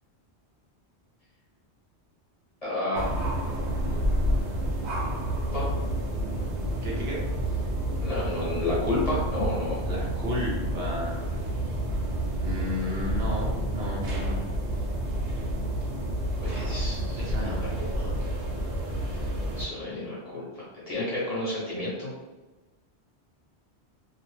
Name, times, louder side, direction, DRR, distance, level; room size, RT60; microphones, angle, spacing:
voice 1, 2.6-3.1 5.5-5.7 8.0-9.8 16.4-17.5 17.8-18.5 19.1-22.1, left 2 dB, 35° left, -8 dB, 1.0 m, -31 dB
sound 1, 2.9-19.7, right 1 dB, 90° right, 1.0 m, -29 dB
voice 2, 6.8-7.2 9.8-11.4 12.4-14.5 17.2-17.7 18.0-18.1, left 1 dB, 70° right, -5 dB, 1.1 m, -33 dB
2.7 x 2.0 x 3.1 m, 1.1 s
omnidirectional pair, 1.1 m